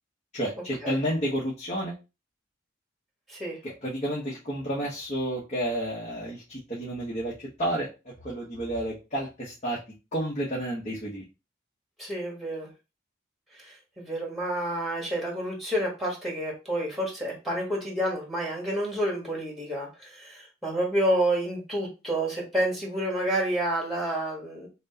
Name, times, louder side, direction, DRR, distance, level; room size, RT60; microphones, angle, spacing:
voice 1, 0.3-1.9 3.6-7.9 8.2-9.8 10.1-11.2, equal, 35° left, -4 dB, 1.0 m, -31 dB
voice 2, 12.0-12.7 13.6-24.7, right 1 dB, ahead, -2 dB, 1.4 m, -29 dB
5.9 x 2.1 x 2.8 m, 0.28 s
head